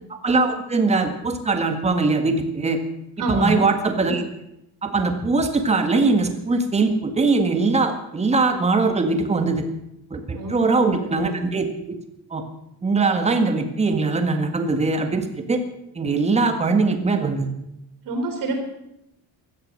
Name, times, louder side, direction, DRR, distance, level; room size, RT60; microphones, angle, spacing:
voice 1, 0.2-2.8 3.3-4.2 4.8-9.6 10.1-12.0 12.3-12.4 12.8-15.6 15.9-17.5, right 3 dB, 15° right, 6 dB, 1.7 m, -21 dB
voice 2, 3.2-3.6 10.3-11.2 18.0-18.6, right 2 dB, 55° right, 4 dB, 3.6 m, -27 dB
16.5 x 13.0 x 6.6 m, 0.84 s
cardioid pair, 170°, 38 cm